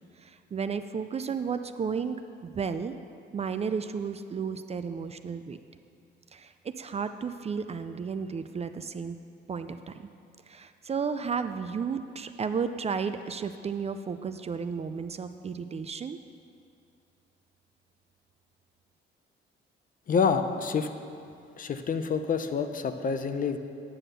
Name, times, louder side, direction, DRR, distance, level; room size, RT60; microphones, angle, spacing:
voice 1, 0.2-2.2 2.4-3.0 3.3-5.6 6.3-9.2 9.5-10.1 10.5-16.2, right 6 dB, 30° right, 9 dB, 0.4 m, -33 dB
voice 2, 20.1-20.9 21.6-23.6, left 5 dB, 45° left, 9 dB, 0.6 m, -27 dB
9.1 x 5.9 x 6.7 m, 2.5 s
cardioid pair, 90°, 20 cm